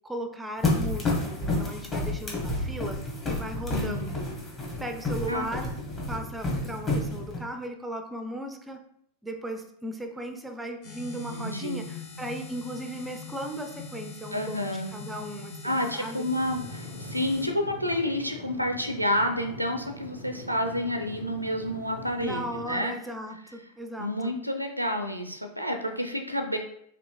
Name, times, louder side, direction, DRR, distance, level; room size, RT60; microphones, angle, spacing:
voice 1, 0.0-4.3 4.8-5.7 6.1-8.8 9.2-14.6 14.9-16.2 22.2-24.4, right 1 dB, 5° right, 6 dB, 0.4 m, -37 dB
sound 1, 0.6-7.4, left 2 dB, 25° left, 1.2 m, -30 dB
voice 2, 3.7-4.2 5.3-5.5 11.3-11.9 14.3-14.9 15.6-22.9 24.0-26.6, left 1 dB, 90° right, 5 dB, 0.5 m, -29 dB
sound 2, 10.8-17.5, left 5 dB, 50° left, 1.0 m, -42 dB
sound 3, 16.3-22.8, equal, 75° left, 1.1 m, -43 dB
5.0 x 2.8 x 2.2 m, 0.72 s
figure-of-eight pair, 90°, 0 cm